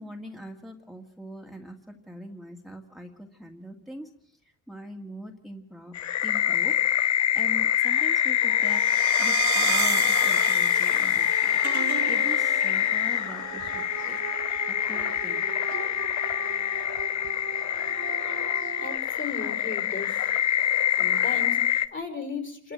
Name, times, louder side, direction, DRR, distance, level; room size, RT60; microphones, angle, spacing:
voice 1, 0.0-5.9 6.2-14.2 14.7-15.5, equal, ahead, 2 dB, 2.2 m, -43 dB
sound 1, 5.9-21.9, left 10 dB, 65° left, 1.1 m, -25 dB
sound 2, 8.4-19.0, right 10 dB, 70° right, 1.6 m, -35 dB
voice 2, 18.8-20.2 21.0-22.7, left 4 dB, 40° left, 8 dB, 4.9 m, -36 dB
27.0 x 13.0 x 9.3 m, 0.67 s
cardioid pair, 90°, 30 cm